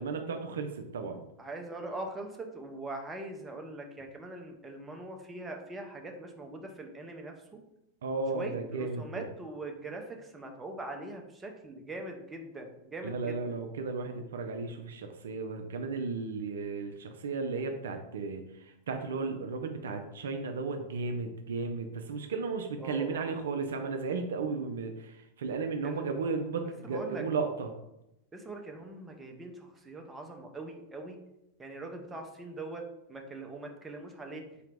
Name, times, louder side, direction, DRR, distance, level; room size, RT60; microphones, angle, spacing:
voice 1, 0.0-1.2 8.0-9.2 13.0-27.7, right 4 dB, 65° right, 5 dB, 0.4 m, -34 dB
voice 2, 1.4-7.6 8.3-13.4 22.8-23.2 25.8-26.0 26.8-27.2 28.3-31.2 31.6-34.4, right 2 dB, 15° right, 3 dB, 0.6 m, -42 dB
4.1 x 2.8 x 3.4 m, 0.87 s
figure-of-eight pair, 90°, 0 cm